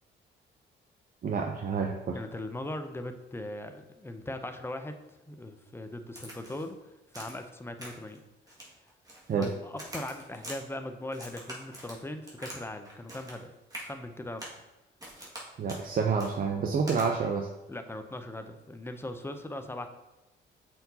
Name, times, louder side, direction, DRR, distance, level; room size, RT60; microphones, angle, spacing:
voice 1, 1.2-2.2 9.3-9.5 15.6-17.5, right 5 dB, 45° right, 2 dB, 0.6 m, -28 dB
voice 2, 2.1-6.8 7.1-8.2 9.3-13.5 13.8-14.4 17.7-19.9, left 1 dB, 10° left, 7 dB, 0.6 m, -39 dB
Crack, 6.1-6.7 7.1-7.5 7.8-8.2 8.5-9.5 9.8-10.6 11.1-12.6 12.8-13.4 13.7-13.9 14.4-14.6 15.0-15.4 15.7-15.8 16.2-16.3 16.9-17.1, right 1 dB, 20° right, 1.9 m, -44 dB
7.5 x 4.6 x 2.8 m, 1.0 s
cardioid pair, 90°, 20 cm